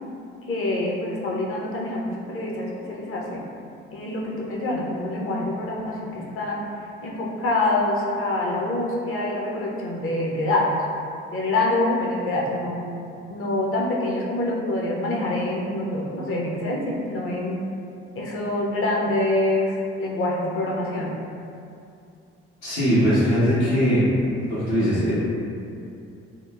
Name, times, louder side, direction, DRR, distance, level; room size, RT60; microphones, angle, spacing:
voice 1, 0.5-3.4 3.9-6.7 7.0-10.7 11.3-12.9 13.3-17.6 18.2-21.1, left 2 dB, 40° left, -3 dB, 0.6 m, -26 dB
voice 2, 22.6-24.3 24.7-25.1, equal, 75° left, -13 dB, 1.4 m, -20 dB
2.9 x 2.1 x 2.3 m, 2.6 s
figure-of-eight pair, 45°, 34 cm